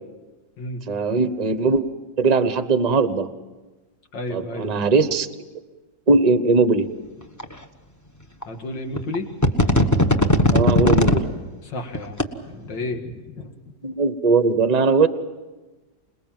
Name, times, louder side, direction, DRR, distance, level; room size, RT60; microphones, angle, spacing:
voice 1, 0.9-1.8 2.2-3.3 4.3-5.3 6.1-6.9 10.5-11.3 13.8-15.1, right 4 dB, 25° right, 11 dB, 1.0 m, -19 dB
voice 2, 4.1-4.7 8.5-9.3 11.6-13.5, left 2 dB, 80° left, 5 dB, 2.7 m, -32 dB
sound 1, 7.4-7.5 8.4-8.5 9.0-9.2 9.4-11.2 11.9-12.2, left 1 dB, 10° left, 1.0 m, -17 dB
27.0 x 21.0 x 7.5 m, 1.2 s
omnidirectional pair, 1.9 m